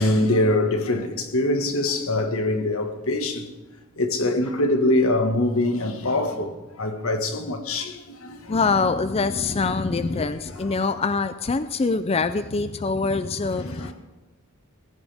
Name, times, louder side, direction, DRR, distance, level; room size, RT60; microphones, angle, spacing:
voice 1, 0.0-3.5 4.0-8.6 10.1-10.3 10.6-10.7 13.5-13.9, left 1 dB, 90° left, 1.8 m, -24 dB
voice 2, 8.5-13.9, left 4 dB, 30° left, 0.4 m, -24 dB
20.0 x 15.5 x 3.6 m
head